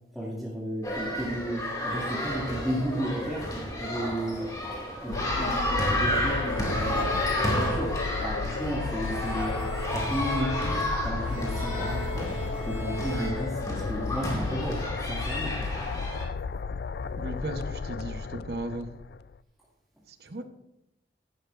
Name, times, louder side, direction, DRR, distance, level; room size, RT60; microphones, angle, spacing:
voice 1, 0.1-4.4 5.0-7.1 7.3-9.6 9.9-10.8 11.0-12.3 12.6-15.5, equal, ahead, -9 dB, 2.3 m, -33 dB
sound 1, 0.8-16.2, left 1 dB, 20° left, 2.3 m, -31 dB
sound 2, 5.1-19.4, left 5 dB, 65° left, 0.3 m, -34 dB
sound 3, 6.5-8.6 8.9-13.3, right 1 dB, 40° left, 3.8 m, -39 dB
voice 2, 17.2-18.9 20.1-20.4, right 1 dB, 65° right, 7 dB, 1.1 m, -36 dB
15.5 x 11.5 x 2.6 m, 0.88 s
head